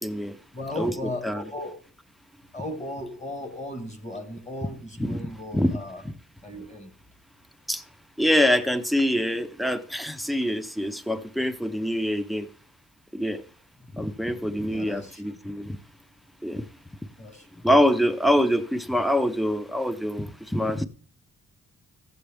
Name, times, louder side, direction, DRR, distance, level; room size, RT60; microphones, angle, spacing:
voice 1, 0.0-0.4 0.8-0.9 1.2-1.4 5.0-5.2 5.5-5.8 6.0-6.1 7.7-7.8 8.2-12.5 13.1-13.4 13.9-15.8 16.4-16.7 17.6-20.9, equal, ahead, 0.5 m, -25 dB
voice 2, 0.5-1.8 2.5-6.0 6.4-6.9 13.8-13.9 14.7-15.4 17.2-17.6, left 1 dB, 20° left, 1.5 m, -36 dB
14.0 x 7.8 x 3.4 m
wide cardioid pair, 125°, 32 cm